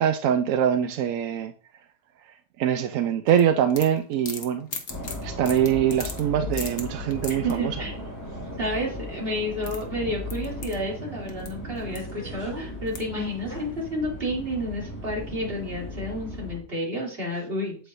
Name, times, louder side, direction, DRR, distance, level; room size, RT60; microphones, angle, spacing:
voice 1, 0.0-1.5 2.6-4.7 5.2-7.8, right 9 dB, 90° right, 1.0 m, -23 dB
sound 1, 3.3-7.5 9.1-9.2 9.4-11.5 11.8-12.3 12.9-13.3, left 4 dB, 50° left, 1.3 m, -38 dB
sound 2, 4.9-16.6, left 1 dB, 15° left, 1.8 m, -36 dB
voice 2, 7.3-7.9 8.6-17.8, equal, 45° right, 3.1 m, -30 dB
8.2 x 7.9 x 2.6 m
omnidirectional pair, 1.4 m